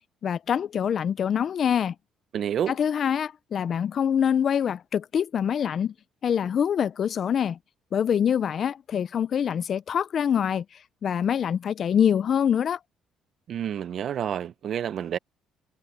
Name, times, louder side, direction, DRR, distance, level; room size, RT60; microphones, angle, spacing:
voice 1, 0.2-1.9 2.7-5.9 6.2-7.6 7.9-10.6 11.0-12.8, left 8 dB, 45° left, 0.4 m, -25 dB
voice 2, 2.3-2.8 13.5-15.2, right 9 dB, 50° right, 0.6 m, -29 dB
cardioid pair, 135°, 0 cm